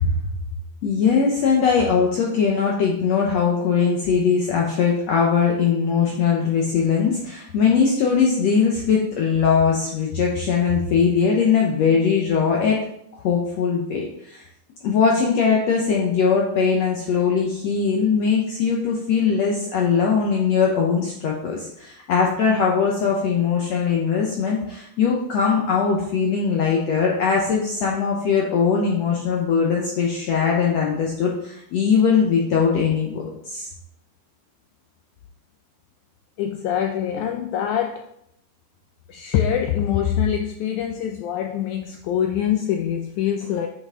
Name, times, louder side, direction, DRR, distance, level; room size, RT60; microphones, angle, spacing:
voice 1, 0.8-12.8 13.1-14.5 14.8-33.7, left 6 dB, 70° left, -1 dB, 1.6 m, -20 dB
voice 2, 36.4-38.1 39.1-43.7, left 9 dB, 90° left, 4 dB, 1.6 m, -24 dB
8.5 x 5.5 x 3.7 m, 0.74 s
omnidirectional pair, 4.0 m